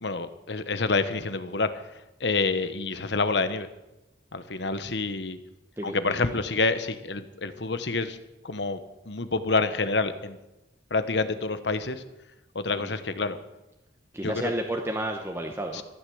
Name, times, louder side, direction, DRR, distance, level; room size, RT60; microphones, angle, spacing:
voice 1, 0.0-1.7 2.2-3.7 4.3-5.4 5.8-8.2 8.4-10.4 10.9-12.0 12.5-13.4 14.2-14.5 15.7-15.8, left 3 dB, 75° left, 11 dB, 1.1 m, -27 dB
voice 2, 5.8-6.4 12.8-12.9 14.1-15.8, right 1 dB, 15° right, 2 dB, 1.1 m, -32 dB
14.5 x 10.0 x 7.9 m, 0.98 s
head